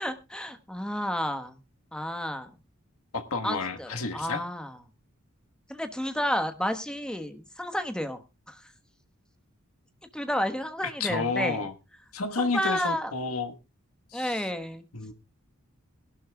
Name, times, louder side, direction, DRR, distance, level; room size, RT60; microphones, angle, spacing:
voice 1, 0.0-1.6 1.9-2.5 3.4-4.8 5.7-8.7 10.1-11.7 12.4-13.1 14.1-14.8, equal, 5° left, 1.2 m, -31 dB
voice 2, 3.1-4.4 11.0-11.7 12.1-13.6 14.1-14.4 14.9-15.1, left 4 dB, 80° left, 1.4 m, -30 dB
21.0 x 12.0 x 2.3 m
head